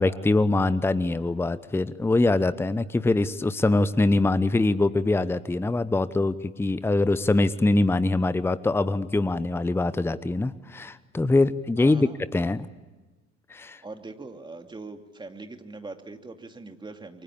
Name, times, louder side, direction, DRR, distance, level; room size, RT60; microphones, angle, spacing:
voice 1, 0.0-12.7 13.5-13.8, left 2 dB, 5° left, 16 dB, 0.9 m, -23 dB
voice 2, 11.8-12.2 13.8-17.2, right 3 dB, 10° right, 6 dB, 2.6 m, -41 dB
29.0 x 24.0 x 8.5 m, 1.2 s
figure-of-eight pair, 70°, 36 cm